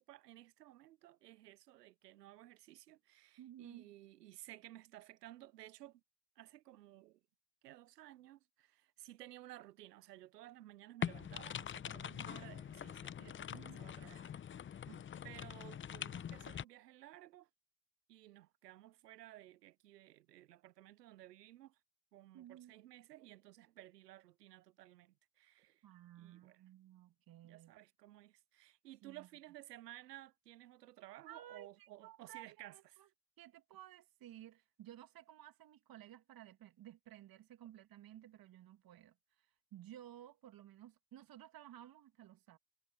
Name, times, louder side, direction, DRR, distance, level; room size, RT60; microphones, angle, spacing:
voice 1, 0.0-6.0 6.4-7.2 7.6-14.8 15.2-17.5 18.1-21.8 22.1-25.8 26.2-26.6 27.4-33.0, right 15 dB, 85° right, 0.9 m, -56 dB
voice 2, 3.4-3.9 13.5-13.9 14.9-15.3 22.3-22.7 25.8-27.7 29.0-29.3 31.3-31.7 32.0-32.4 32.7-33.1 33.4-42.6, right 12 dB, 50° right, 2.7 m, -56 dB
sound 1, 11.0-16.6, left 9 dB, 25° left, 0.8 m, -44 dB
hypercardioid pair, 70°, 47 cm